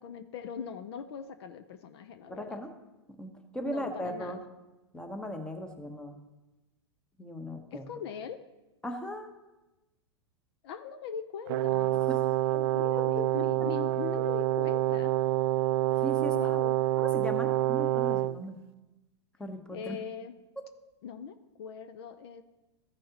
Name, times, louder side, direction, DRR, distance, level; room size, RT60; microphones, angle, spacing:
voice 1, 0.0-2.6 3.6-4.4 7.7-8.4 10.6-11.9 12.5-15.1 15.9-16.0 16.3-16.7 19.7-20.3 21.0-22.4, left 7 dB, 60° left, 10 dB, 0.7 m, -41 dB
voice 2, 2.3-2.7 3.2-4.4 4.9-6.1 7.2-7.8 8.8-9.3 12.1-12.2 13.6-13.7 16.0-16.4 17.0-18.6 19.4-19.9, equal, 5° left, 5 dB, 1.0 m, -37 dB
Brass instrument, 11.5-18.4, right 15 dB, 55° right, 0.4 m, -27 dB
14.0 x 6.4 x 2.9 m, 1.0 s
hypercardioid pair, 115°, 15 cm